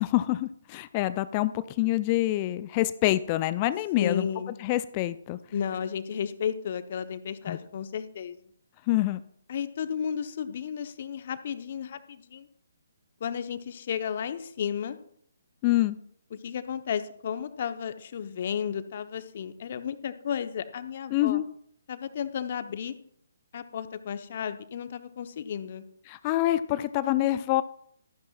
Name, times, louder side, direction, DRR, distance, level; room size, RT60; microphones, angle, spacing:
voice 1, 0.0-4.3 4.6-5.4 7.5-7.6 8.9-9.2 15.6-16.0 21.1-21.5 26.1-27.6, left 16 dB, 30° left, 15 dB, 0.4 m, -26 dB
voice 2, 4.0-4.6 5.5-8.4 9.5-12.5 13.2-15.0 16.3-21.4 21.9-23.0 23.5-25.8, left 8 dB, 50° left, 11 dB, 0.9 m, -33 dB
13.0 x 11.5 x 2.4 m, 0.64 s
figure-of-eight pair, 140°, 0 cm